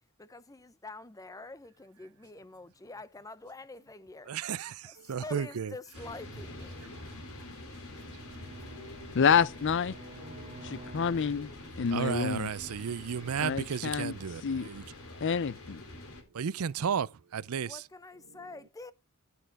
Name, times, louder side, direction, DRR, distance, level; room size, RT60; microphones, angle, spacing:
voice 1, 0.2-4.3 4.8-6.9 17.6-18.9, left 2 dB, 15° left, 0.6 m, -46 dB
voice 2, 4.3-5.7 11.9-14.8 16.3-17.8, right 7 dB, 80° right, 0.5 m, -33 dB
sound 1, 5.9-16.2, left 1 dB, 80° left, 3.4 m, -45 dB
Bowed string instrument, 7.8-12.1, right 4 dB, 35° right, 0.5 m, -51 dB
voice 3, 9.1-10.0 10.6-12.5 13.4-14.1 14.4-14.7 15.2-15.8, left 6 dB, 55° left, 0.5 m, -28 dB
11.0 x 6.5 x 4.8 m
head